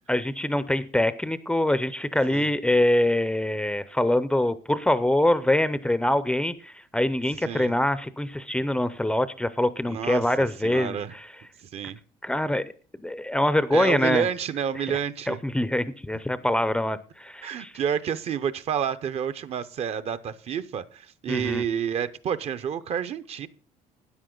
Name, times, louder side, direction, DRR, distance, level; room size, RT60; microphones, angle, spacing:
voice 1, 0.1-11.3 12.2-12.6 13.0-14.3 15.3-17.7 21.3-21.6, left 1 dB, 5° left, 14 dB, 0.5 m, -24 dB
voice 2, 7.4-7.7 9.8-10.2 10.6-11.1 11.6-12.0 13.7-15.4 17.4-23.5, right 8 dB, 45° right, 13 dB, 0.8 m, -29 dB
12.5 x 9.8 x 3.8 m, 0.40 s
cardioid pair, 150°, 15 cm